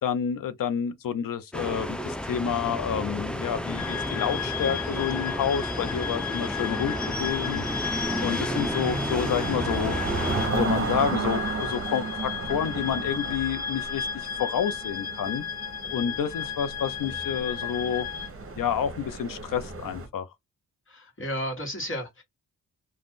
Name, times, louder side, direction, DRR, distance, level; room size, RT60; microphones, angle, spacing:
voice 1, 0.0-7.7 8.2-9.9 10.5-15.4 15.9-18.1 18.6-20.3, left 8 dB, 60° left, 0.6 m, -29 dB
sound 1, 1.5-10.5, equal, 5° left, 0.3 m, -31 dB
sound 2, 3.8-18.3, left 8 dB, 80° left, 1.3 m, -34 dB
sound 3, 7.2-20.1, right 3 dB, 35° right, 0.8 m, -34 dB
voice 2, 10.4-10.9 20.9-22.2, equal, 35° left, 1.4 m, -33 dB
2.4 x 2.4 x 3.6 m
cardioid pair, 80°, 37 cm